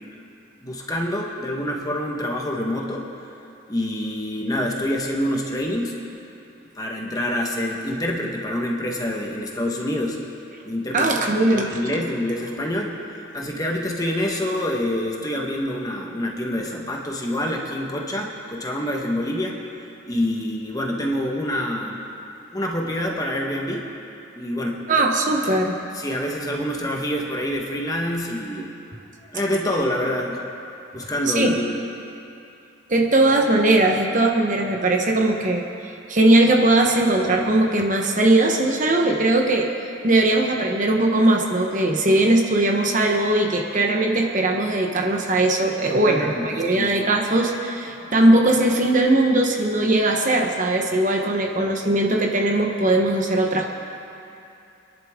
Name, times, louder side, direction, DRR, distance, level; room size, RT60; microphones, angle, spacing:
voice 1, 0.6-3.0 3.7-5.9 6.8-10.2 10.6-11.1 11.5-12.9 13.3-19.6 20.1-22.0 22.5-23.8 24.3-24.8 25.9-28.7 29.3-30.4 30.9-31.7 45.9-47.0, left 1 dB, 20° left, -1 dB, 1.3 m, -26 dB
voice 2, 10.9-11.8 24.9-25.8 31.3-31.6 32.9-39.7 40.0-53.7, right 2 dB, 40° right, 1 dB, 1.1 m, -19 dB
26.0 x 11.0 x 3.7 m, 2.7 s
head